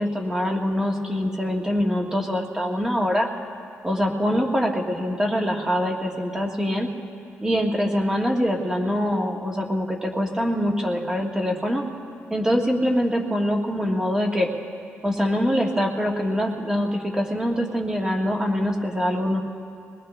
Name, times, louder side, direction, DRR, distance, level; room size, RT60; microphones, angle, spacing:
voice 1, 0.0-3.3 3.8-6.9 7.4-11.8 12.3-14.5 15.0-19.4, equal, 15° right, 1 dB, 1.6 m, -24 dB
23.0 x 19.0 x 3.3 m, 2.5 s
cardioid pair, 100°, 5 cm